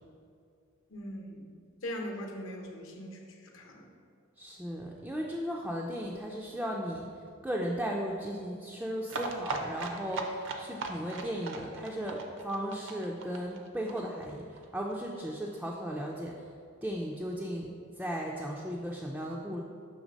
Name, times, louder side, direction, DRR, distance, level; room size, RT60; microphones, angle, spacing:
voice 1, 0.9-1.5 1.8-3.2 3.5-3.8, equal, 65° left, 2 dB, 0.8 m, -40 dB
voice 2, 4.4-7.1 7.4-16.5 16.8-19.6, equal, 5° right, -2 dB, 0.3 m, -36 dB
sound 1, 9.1-14.6 14.9-15.0 15.2-15.3 15.6-15.7, right 3 dB, 60° right, 0.5 m, -38 dB
6.2 x 3.3 x 5.1 m, 2.4 s
head